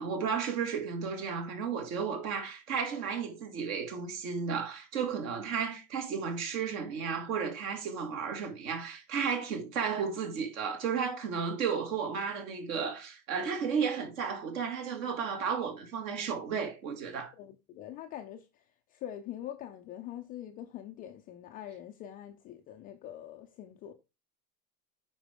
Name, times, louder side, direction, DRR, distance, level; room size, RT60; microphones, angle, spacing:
voice 1, 0.0-17.3, right 6 dB, 55° right, 2.3 m, -33 dB
voice 2, 17.4-18.5 18.9-23.9, left 11 dB, 20° left, 0.4 m, -44 dB
9.0 x 4.6 x 3.6 m
figure-of-eight pair, 90°, 48 cm